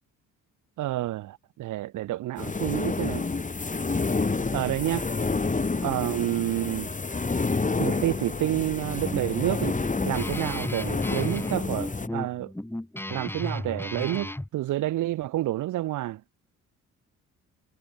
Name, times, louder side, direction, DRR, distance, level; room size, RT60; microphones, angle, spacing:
voice 1, 0.8-3.2 4.5-5.0 5.8-6.9 7.8-9.8 10.0-12.5 13.1-16.2, right 15 dB, 85° right, 3.2 m, -29 dB
sound 1, 2.4-12.1, left 3 dB, 25° left, 7.2 m, -29 dB
Guitar, 8.7-14.5, left 1 dB, 5° left, 7.9 m, -34 dB
cardioid pair, 90°, 30 cm